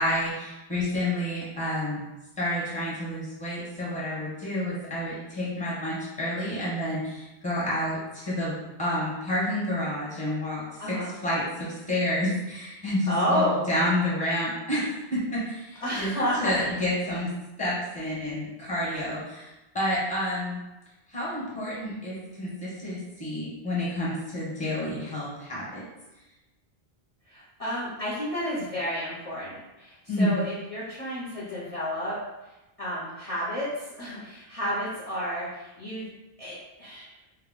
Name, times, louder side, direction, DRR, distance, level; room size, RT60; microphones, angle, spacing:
voice 1, 0.0-2.0 2.4-10.6 10.9-11.0 11.2-15.6 16.0-16.1 16.4-17.3 17.6-19.5 19.7-20.6 21.1-25.8 30.1-30.3, left 1 dB, 10° left, -7 dB, 0.8 m, -29 dB
voice 2, 10.8-11.1 13.0-13.7 15.8-16.8 27.3-32.2 32.4-36.1 36.4-37.1, equal, 40° left, -9 dB, 0.6 m, -31 dB
2.1 x 2.1 x 3.6 m, 1.0 s
omnidirectional pair, 1.1 m